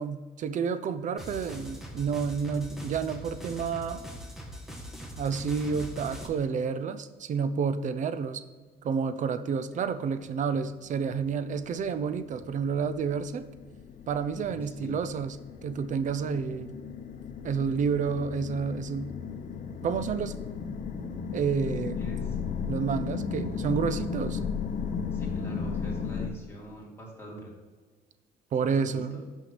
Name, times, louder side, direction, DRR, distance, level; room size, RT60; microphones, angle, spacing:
voice 1, 0.0-4.1 5.2-8.4 8.8-13.5 14.1-15.4 15.6-16.7 17.4-19.1 19.8-20.3 21.3-22.0 22.7-24.4 28.5-29.2, right 6 dB, 45° right, 12 dB, 0.6 m, -30 dB
sound 1, 1.2-6.3, equal, ahead, 1.4 m, -42 dB
sound 2, 10.9-26.3, left 6 dB, 50° left, 0.9 m, -35 dB
voice 2, 14.4-15.0 22.0-22.4 25.1-27.6 28.6-29.2, right 1 dB, 15° left, -4 dB, 2.6 m, -45 dB
6.0 x 5.6 x 6.0 m, 1.5 s
cardioid pair, 110°, 17 cm